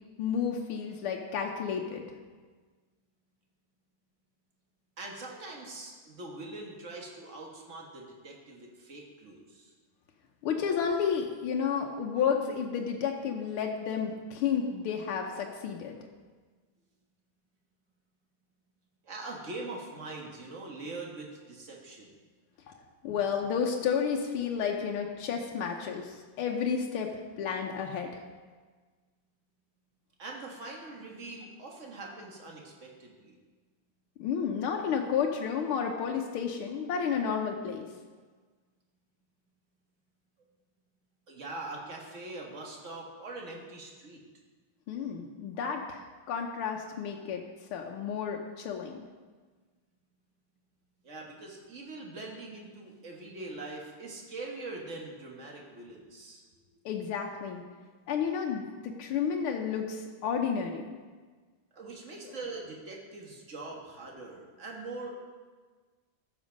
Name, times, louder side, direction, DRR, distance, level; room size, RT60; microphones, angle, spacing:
voice 1, 0.2-2.1 10.4-16.0 22.7-22.8 23.0-27.1 27.4-28.2 34.2-37.9 44.9-47.4 47.7-49.0 56.9-57.6 58.1-60.8, left 7 dB, 85° left, 1 dB, 1.7 m, -31 dB
voice 2, 5.0-9.7 19.0-22.1 30.2-33.4 41.3-44.2 51.0-56.4 61.7-65.1, right 2 dB, 35° right, -1 dB, 1.8 m, -43 dB
14.5 x 6.0 x 5.2 m, 1.4 s
omnidirectional pair, 2.3 m